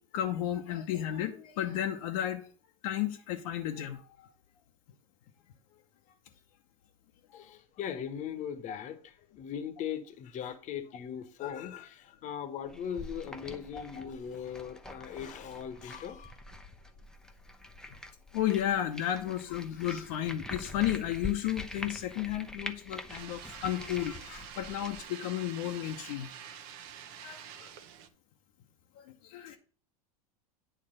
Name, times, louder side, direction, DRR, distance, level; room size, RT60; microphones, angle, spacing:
voice 1, 0.1-2.5 2.8-4.3 7.5-7.6 8.7-8.8 13.7-14.1 18.3-26.3 27.2-27.7 29.0-29.6, left 11 dB, 65° left, 0.9 m, -33 dB
voice 2, 7.3-16.3, left 8 dB, 40° left, 1.1 m, -39 dB
sound 1, 12.7-25.0, left 2 dB, 5° left, 0.7 m, -45 dB
sound 2, 23.1-28.1, right 9 dB, 60° right, 0.9 m, -47 dB
9.0 x 3.3 x 6.4 m
hypercardioid pair, 95°, 19 cm